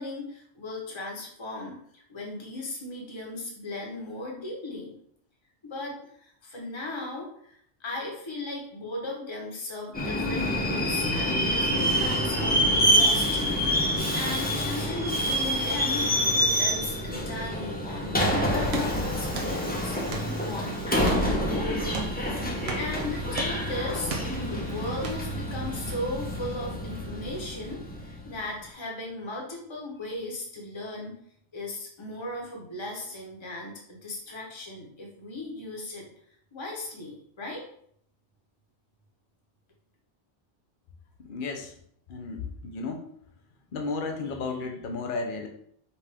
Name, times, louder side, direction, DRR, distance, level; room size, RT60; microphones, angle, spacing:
voice 1, 0.0-4.9 5.6-16.1 16.3-21.9 22.5-24.1 24.4-31.2 31.5-36.1 36.5-37.6, left 2 dB, 25° left, -1 dB, 1.0 m, -37 dB
Subway metro underground, 9.9-28.4, equal, 10° left, 0.6 m, -27 dB
sound 1, 18.6-25.9, right 3 dB, 65° right, 0.9 m, -40 dB
voice 2, 41.2-41.7 42.1-43.1 43.7-45.5, left 4 dB, 55° left, 3 dB, 0.8 m, -33 dB
5.3 x 2.6 x 3.4 m, 0.66 s
omnidirectional pair, 1.2 m